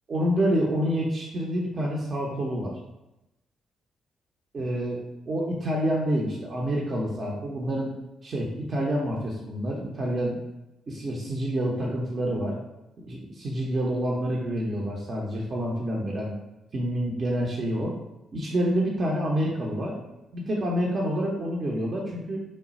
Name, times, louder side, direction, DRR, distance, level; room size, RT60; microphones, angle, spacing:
voice 1, 0.1-2.8 4.5-5.0 5.3-7.9 8.2-10.4 10.9-12.6 13.0-16.3 16.7-18.0 18.3-20.0 20.3-22.4, equal, 50° right, -2 dB, 0.6 m, -27 dB
3.1 x 2.2 x 4.0 m, 0.94 s
hypercardioid pair, 45°, 0 cm